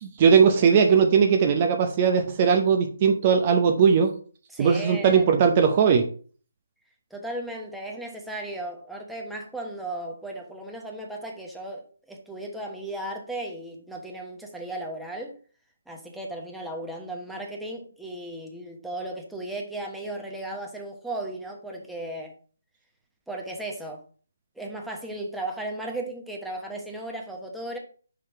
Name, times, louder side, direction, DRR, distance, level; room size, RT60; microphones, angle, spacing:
voice 1, 0.0-4.1 4.6-6.1, right 6 dB, 35° right, 0.7 m, -19 dB
voice 2, 4.5-5.2 7.1-15.4 15.9-22.3 23.3-24.0 24.6-27.8, right 1 dB, ahead, 1.0 m, -35 dB
5.7 x 5.0 x 4.6 m
figure-of-eight pair, 155°, 0 cm